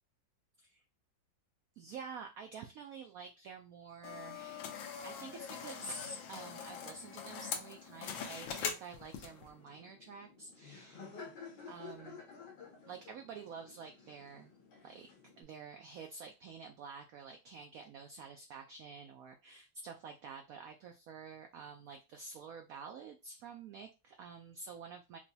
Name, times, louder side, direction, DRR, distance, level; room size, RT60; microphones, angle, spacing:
voice 1, 1.8-11.1 11.7-12.2 12.9-14.5 14.8-15.1 15.4-25.2, right 5 dB, 85° right, 4 dB, 0.7 m, -49 dB
sound 1, 4.0-9.5, left 6 dB, 85° left, 1.4 m, -43 dB
Laughter, 9.2-15.4, left 5 dB, 65° left, 1.7 m, -53 dB
4.9 x 2.2 x 2.7 m, 0.27 s
omnidirectional pair, 2.1 m